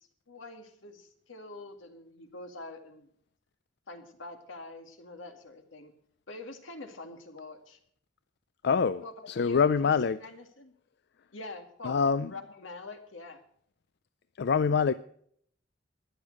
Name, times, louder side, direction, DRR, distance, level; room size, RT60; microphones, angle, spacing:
voice 1, 0.3-3.1 3.9-5.9 6.3-7.8 9.0-10.7 11.3-12.0 12.3-13.4, left 2 dB, 80° left, 2.0 m, -45 dB
voice 2, 8.6-10.2 11.8-12.3 14.4-14.9, left 6 dB, 60° left, 0.4 m, -25 dB
13.5 x 10.5 x 6.4 m
head